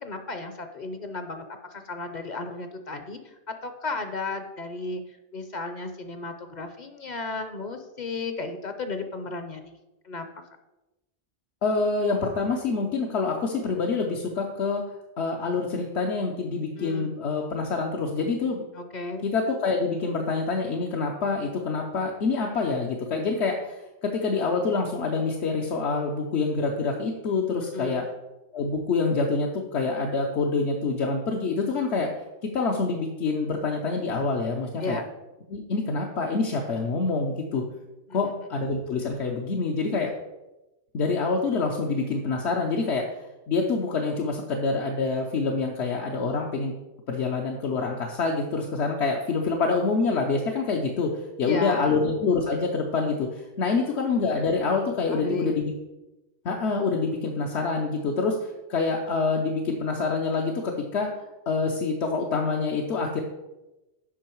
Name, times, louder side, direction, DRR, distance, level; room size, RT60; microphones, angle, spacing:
voice 1, 0.0-1.4 1.7-5.0 5.3-9.8 10.0-10.3 16.8-17.1 18.7-19.3 27.6-28.1 34.8-35.0 38.1-38.2 51.4-52.0 53.7-53.9 55.1-55.6, left 3 dB, 50° left, 7 dB, 0.7 m, -34 dB
voice 2, 11.6-14.8 15.2-18.7 19.2-28.0 28.5-32.1 32.4-35.0 35.5-37.6 38.1-40.1 40.9-43.1 43.5-46.7 47.1-55.7 56.4-61.1 61.5-63.2, left 4 dB, 75° left, 0 dB, 1.1 m, -26 dB
8.5 x 5.5 x 4.5 m, 1.0 s
omnidirectional pair, 1.1 m